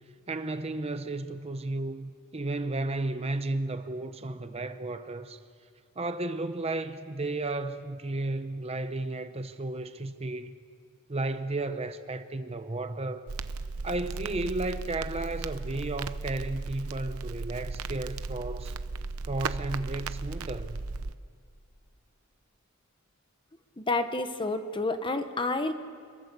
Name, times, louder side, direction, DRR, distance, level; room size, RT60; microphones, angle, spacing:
voice 1, 0.3-5.4 6.0-10.5 11.1-13.2 13.8-18.8 19.2-20.8, right 2 dB, 30° right, 0.8 m, -33 dB
Crackle, 13.3-21.1, right 3 dB, 75° right, 0.8 m, -36 dB
voice 2, 23.8-25.7, left 2 dB, 20° left, 1.1 m, -29 dB
27.0 x 22.5 x 6.8 m
head